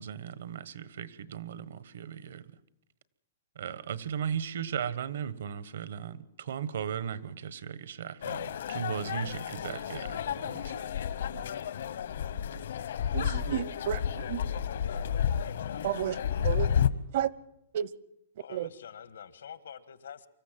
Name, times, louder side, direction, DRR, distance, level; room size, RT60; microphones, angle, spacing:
voice 1, 0.0-2.4 3.5-10.7, right 8 dB, 75° right, 1.3 m, -37 dB
sound 1, 8.2-16.9, left 9 dB, 70° left, 0.9 m, -31 dB
voice 2, 13.1-14.4 15.8-16.2 16.4-16.7 17.1-17.3 17.7-17.9 18.5-18.7, right 10 dB, 50° right, 0.8 m, -31 dB
voice 3, 14.8-16.3 18.4-20.3, left 8 dB, 90° left, 1.5 m, -47 dB
25.0 x 14.5 x 7.6 m
hypercardioid pair, 170°, 0 cm